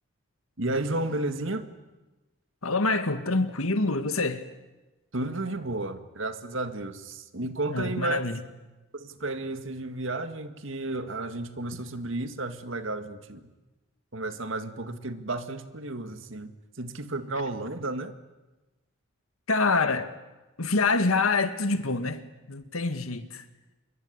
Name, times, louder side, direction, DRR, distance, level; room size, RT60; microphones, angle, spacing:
voice 1, 0.6-1.7 5.1-8.2 8.9-13.5 14.1-16.5 16.8-18.1, right 2 dB, 65° right, 2.0 m, -32 dB
voice 2, 2.6-4.5 7.7-8.4 19.5-20.1 20.6-22.2 22.5-23.4, left 3 dB, 90° left, 2.0 m, -26 dB
26.5 x 23.0 x 9.8 m
head